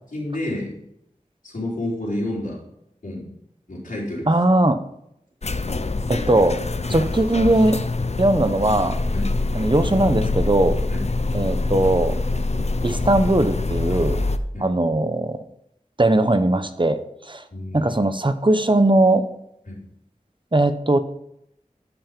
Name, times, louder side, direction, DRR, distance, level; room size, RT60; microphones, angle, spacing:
voice 1, 0.1-0.8 1.4-2.6 3.0-3.3 3.7-4.3 6.9-7.0 9.1-9.3 10.9-11.0 14.5-14.7 17.5-18.0 19.7-19.8, left 1 dB, 85° left, -5 dB, 4.2 m, -29 dB
voice 2, 4.3-4.8 6.1-6.6 6.9-7.8 8.2-9.0 9.5-10.8 11.3-12.2 12.8-14.2 14.6-15.4 16.0-17.4 17.7-19.2 20.5-21.0, right 1 dB, 35° right, 9 dB, 0.8 m, -19 dB
sound 1, 5.4-14.4, left 3 dB, 55° left, 0.7 m, -25 dB
13.0 x 5.8 x 5.3 m, 0.78 s
wide cardioid pair, 45°, 14 cm